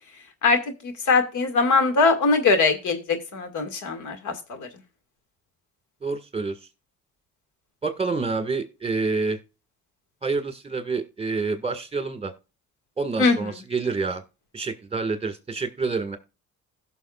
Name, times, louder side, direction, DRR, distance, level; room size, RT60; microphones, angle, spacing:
voice 1, 0.4-4.7 13.2-13.4, left 4 dB, 75° left, 7 dB, 2.0 m, -22 dB
voice 2, 6.0-6.6 7.8-9.4 10.2-12.3 13.0-14.2 14.5-16.2, right 4 dB, 20° right, 8 dB, 1.7 m, -27 dB
16.5 x 6.2 x 2.4 m, 0.30 s
cardioid pair, 90°, 30 cm